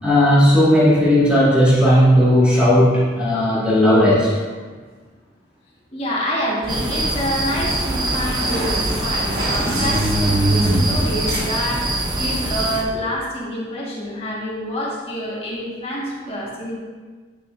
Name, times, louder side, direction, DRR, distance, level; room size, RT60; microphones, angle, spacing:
voice 1, 0.0-4.3, equal, 5° right, -10 dB, 2.0 m, -15 dB
voice 2, 5.9-16.8, equal, 35° left, -6 dB, 1.6 m, -27 dB
sound 1, 6.6-12.6, equal, 60° right, 1.6 m, -29 dB
sound 2, 6.7-12.8, right 1 dB, 25° right, 0.7 m, -22 dB
9.3 x 5.6 x 2.6 m, 1.4 s
head